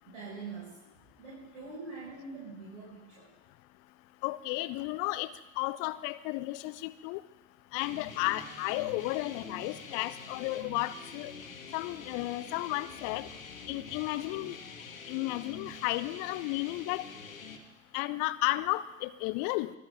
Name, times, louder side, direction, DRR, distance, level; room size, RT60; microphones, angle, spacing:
voice 1, 0.0-0.8 1.2-3.3, right 4 dB, 65° right, -6 dB, 5.3 m, -44 dB
voice 2, 4.2-5.3 5.6-7.2 7.7-11.3 11.7-13.3 13.7-14.6 15.1-17.1 17.9-19.7, left 18 dB, 45° left, 16 dB, 0.8 m, -33 dB
sound 1, 7.8-17.6, left 4 dB, 75° left, 1.8 m, -46 dB
23.0 x 12.5 x 3.6 m, 1.0 s
figure-of-eight pair, 75°, 41 cm